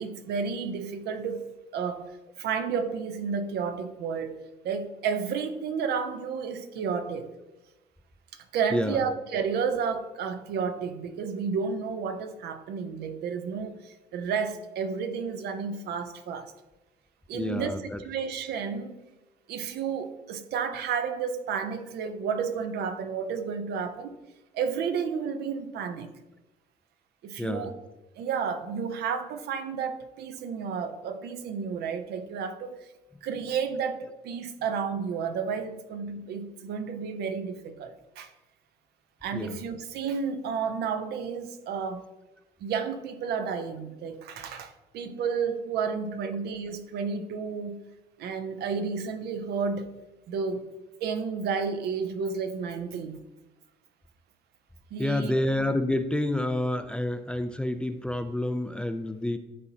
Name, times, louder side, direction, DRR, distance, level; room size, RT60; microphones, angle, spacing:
voice 1, 0.0-1.5 1.7-2.1 2.4-7.3 8.3-16.5 17.3-18.9 19.5-24.2 24.5-26.1 27.2-27.7 28.2-32.8 33.2-38.3 39.2-42.0 42.6-47.8 48.2-49.9 50.3-50.6 51.0-53.2 54.9-55.3, right 6 dB, 70° right, 0.6 m, -31 dB
voice 2, 8.7-9.1 17.3-18.0 27.4-27.8 39.3-39.6 55.0-59.4, left 1 dB, 5° left, 0.3 m, -29 dB
11.0 x 3.9 x 2.8 m
cardioid pair, 110°, 17 cm